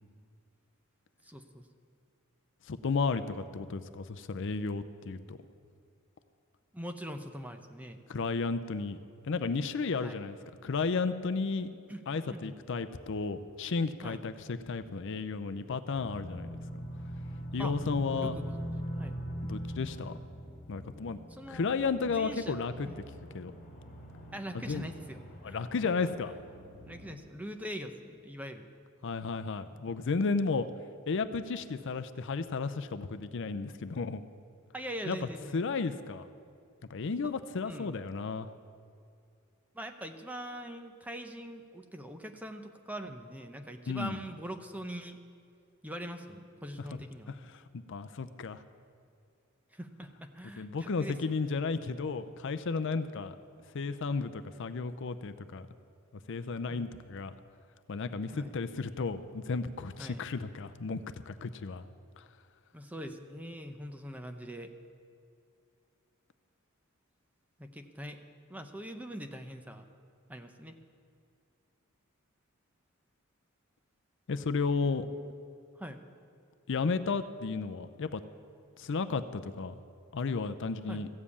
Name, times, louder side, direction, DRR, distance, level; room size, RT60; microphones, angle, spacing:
voice 1, 1.2-1.7 6.7-8.0 10.0-10.2 11.9-12.0 12.3-12.6 14.0-14.2 17.6-17.8 18.2-19.2 21.3-21.7 22.2-22.6 22.8-23.0 24.3-25.2 25.4-25.6 26.9-28.7 34.7-35.6 37.6-38.0 39.7-45.2 45.8-47.3 49.7-51.2 56.7-57.0 58.3-58.6 60.0-60.2 62.7-64.7 67.6-68.2 68.5-69.8 70.3-70.8 75.8-76.0 80.9-81.0, equal, 5° right, 6 dB, 0.7 m, -42 dB
voice 2, 2.7-5.4 8.1-9.0 9.2-10.4 10.6-11.7 12.1-16.5 17.5-18.4 19.5-20.2 20.7-21.2 21.5-22.9 23.3-23.5 24.7-24.9 25.4-26.3 29.0-30.7 31.1-34.2 35.1-35.2 35.5-36.3 36.9-38.5 43.9-44.2 47.5-48.6 50.6-53.4 53.7-55.7 56.3-57.3 57.9-61.8 62.2-62.3 74.3-75.1 76.7-78.2 78.8-79.7 80.1-81.1, left 4 dB, 60° left, 11 dB, 0.5 m, -33 dB
sound 1, 15.9-27.2, equal, 40° left, 2.4 m, -42 dB
14.5 x 7.4 x 8.4 m, 2.4 s
head